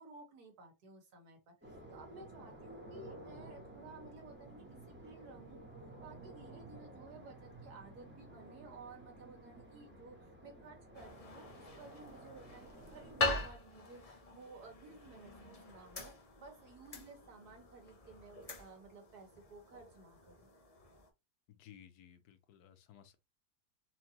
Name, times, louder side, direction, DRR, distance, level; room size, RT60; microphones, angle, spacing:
voice 1, 0.0-5.6 6.0-16.1 16.4-20.5, right 3 dB, 70° right, 1.7 m, -55 dB
sound 1, 1.6-13.4, right 1 dB, 10° right, 0.7 m, -53 dB
sound 2, 10.9-21.1, left 2 dB, 45° left, 0.4 m, -43 dB
voice 2, 21.5-23.2, left 10 dB, 70° left, 1.1 m, -58 dB
4.3 x 2.6 x 2.8 m
omnidirectional pair, 1.8 m